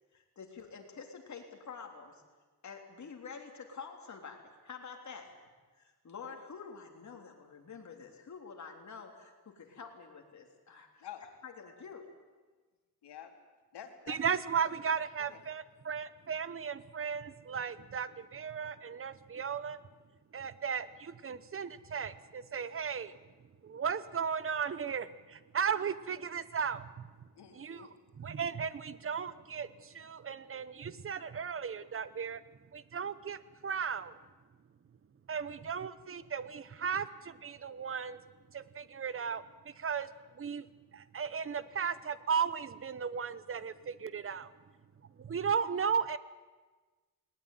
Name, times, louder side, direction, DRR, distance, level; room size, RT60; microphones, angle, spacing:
voice 1, 0.1-2.2 2.6-5.4 5.7-11.1 11.4-12.0, left 5 dB, 45° left, 3 dB, 3.5 m, -48 dB
voice 2, 13.0-13.3 13.7-14.2 15.3-15.4 27.4-27.9, left 10 dB, 90° left, 5 dB, 2.8 m, -48 dB
voice 3, 14.1-19.8 20.3-23.2 23.6-27.9 28.2-32.4 32.7-34.2 35.3-38.2 38.5-40.1 40.3-40.7 40.9-44.5 45.2-46.2, right 6 dB, 35° right, 16 dB, 0.8 m, -36 dB
20.0 x 19.5 x 9.2 m, 1.3 s
wide cardioid pair, 150°, 39 cm